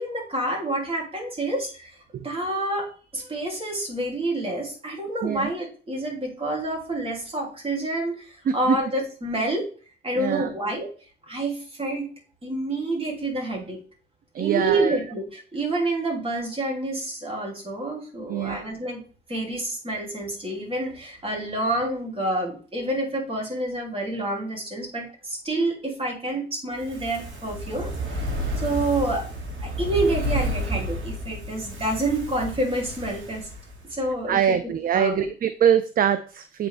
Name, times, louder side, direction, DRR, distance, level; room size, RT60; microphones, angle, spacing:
voice 1, 0.0-1.9 2.2-9.7 10.0-10.9 11.3-12.1 12.4-13.8 14.4-19.0 19.3-28.3 28.6-29.2 29.6-33.5 33.9-34.6 34.9-35.3, right 2 dB, 30° right, -1 dB, 2.9 m, -28 dB
voice 2, 8.5-8.8 10.1-10.5 14.3-15.0 18.3-18.6 34.3-36.7, right 8 dB, 45° right, 12 dB, 0.5 m, -23 dB
Fire, 26.7-34.1 34.4-34.5, equal, 75° right, 2.1 m, -31 dB
7.7 x 4.3 x 3.4 m, 0.38 s
cardioid pair, 90°, 20 cm